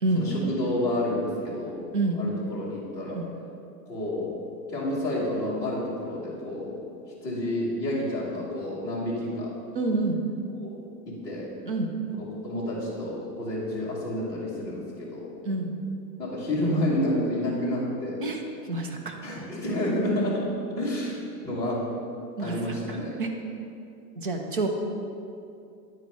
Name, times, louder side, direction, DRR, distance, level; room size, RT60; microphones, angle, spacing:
voice 1, 0.1-1.8 2.1-3.2 3.9-4.4 4.7-6.8 7.2-9.6 10.6-11.5 12.2-15.3 16.2-18.3 19.2-21.8 22.4-23.1, left 1 dB, 5° left, -9 dB, 1.2 m, -29 dB
voice 2, 9.7-10.2 11.7-11.9 15.5-15.7 18.2-18.4 18.7-19.2 22.4-23.3 24.2-24.7, right 2 dB, 35° right, 3 dB, 0.4 m, -28 dB
9.4 x 3.9 x 4.6 m, 2.6 s
hypercardioid pair, 165°, 50 cm